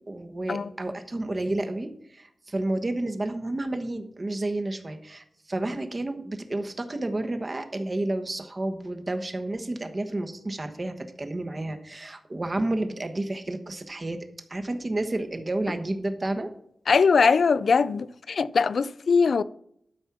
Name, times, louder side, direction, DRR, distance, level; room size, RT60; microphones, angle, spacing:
voice 1, 0.1-14.2 14.5-16.5, right 2 dB, 35° right, 1.2 m, -31 dB
voice 2, 16.9-19.4, left 5 dB, 75° left, 0.4 m, -21 dB
12.0 x 4.5 x 6.0 m
wide cardioid pair, 75°, 0 cm